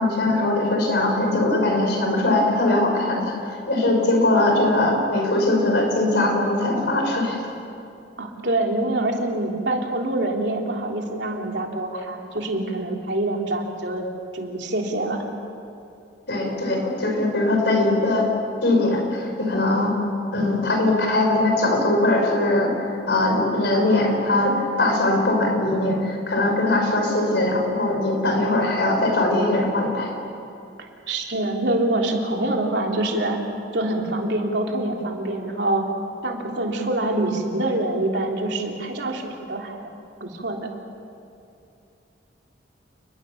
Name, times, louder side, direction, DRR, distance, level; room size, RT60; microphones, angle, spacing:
voice 1, 0.0-3.3 3.7-7.4 16.3-18.3 18.6-19.9 20.3-30.1, left 2 dB, 65° left, 1 dB, 5.8 m, -21 dB
voice 2, 8.2-14.1 14.3-15.2 31.1-33.4 33.7-35.9 36.2-39.9 40.2-40.7, right 1 dB, 65° right, 1 dB, 3.5 m, -25 dB
29.5 x 21.0 x 7.3 m, 2.6 s
head